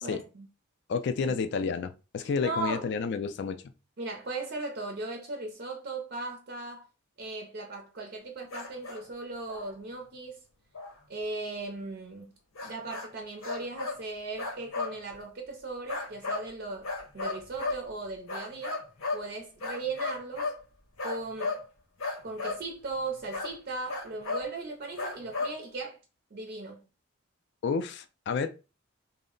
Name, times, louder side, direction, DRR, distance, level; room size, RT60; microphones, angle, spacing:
voice 1, 0.0-0.5 1.3-1.4 2.2-2.9 4.0-6.9 7.2-10.4 11.1-12.3 12.6-18.8 19.1-20.5 21.0-21.5 22.2-26.0 26.3-26.8, right 3 dB, 50° right, 0.5 m, -38 dB
voice 2, 0.9-3.6 27.6-28.5, left 5 dB, 55° left, 0.3 m, -30 dB
sound 1, 8.5-9.1 9.5-9.7 10.7-10.9 12.6-13.1 13.4-14.0 14.4-15.0 15.9-16.5 16.8-17.9 18.3-19.3 19.6-20.6 21.0-21.7 22.0-22.6 23.3-23.5 23.9-24.5 25.0-25.6, left 3 dB, 80° left, 0.7 m, -34 dB
2.1 x 2.0 x 3.7 m
head